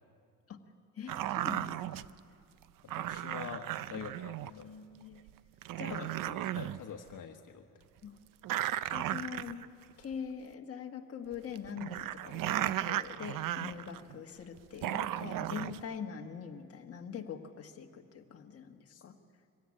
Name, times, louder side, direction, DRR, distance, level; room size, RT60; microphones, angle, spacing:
voice 1, 0.9-2.1 3.9-4.1 4.4-5.3 5.8-6.1 8.0-8.2 8.9-9.7 10.0-19.2, left 7 dB, 45° left, 3 dB, 1.6 m, -43 dB
sound 1, 1.1-2.1 2.9-4.6 5.3-5.4 5.6-6.8 7.1-7.2 8.4-9.8 10.1-10.2 11.3-14.2 14.6-15.8, right 13 dB, 80° right, 0.6 m, -35 dB
voice 2, 2.9-4.7 5.9-7.6 18.9-19.0, left 7 dB, 70° left, 4 dB, 1.3 m, -45 dB
23.5 x 17.0 x 9.8 m, 2.3 s
cardioid pair, 125°, 33 cm